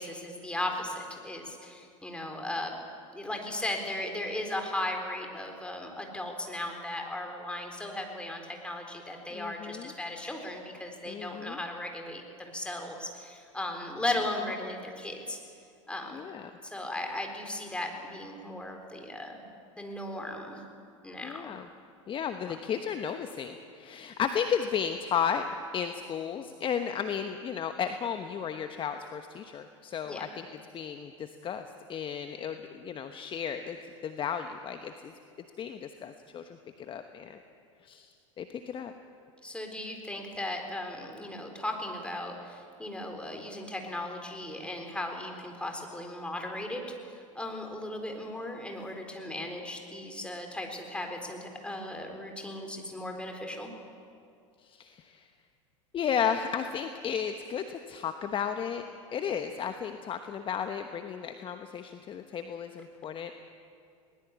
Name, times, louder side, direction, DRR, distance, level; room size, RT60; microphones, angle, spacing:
voice 1, 0.0-2.7 3.1-15.4 15.9-16.4 16.6-19.4 19.8-20.6 21.0-21.5 22.5-22.6 30.0-30.3 39.4-53.7, left 1 dB, 5° left, 3 dB, 4.1 m, -37 dB
voice 2, 9.3-9.9 11.0-11.6 16.1-16.5 21.2-21.7 22.1-25.5 25.7-30.5 30.7-31.6 31.9-35.1 35.6-37.4 37.8-38.9 54.6-55.3 55.9-58.8 59.1-63.3, left 7 dB, 30° left, 7 dB, 1.1 m, -34 dB
20.5 x 19.5 x 8.3 m, 2.4 s
hypercardioid pair, 85°, 17 cm